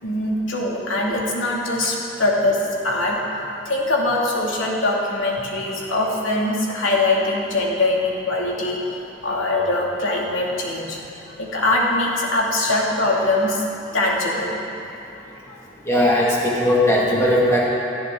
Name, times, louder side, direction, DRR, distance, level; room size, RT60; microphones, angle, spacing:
voice 1, 0.0-2.6 2.8-3.2 3.6-8.8 9.2-11.0 11.4-14.7 15.5-15.6, left 2 dB, 80° left, -3 dB, 2.5 m, -22 dB
voice 2, 15.9-17.7, left 1 dB, 15° left, -5 dB, 2.2 m, -18 dB
18.5 x 13.5 x 3.9 m, 2.7 s
head